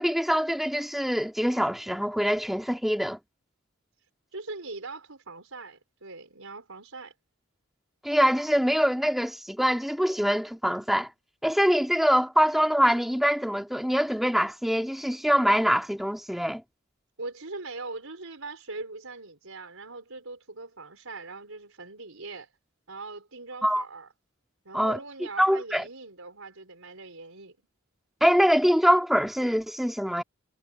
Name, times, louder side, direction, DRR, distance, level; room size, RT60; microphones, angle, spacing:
voice 1, 0.0-3.2 8.0-11.1 11.4-16.6 23.6-23.9 24.7-25.0 25.4-25.8 28.2-30.2, equal, ahead, 2.4 m, -24 dB
voice 2, 4.3-7.1 17.2-22.5 22.9-24.1 24.6-27.6, right 3 dB, 85° right, 4.9 m, -41 dB
head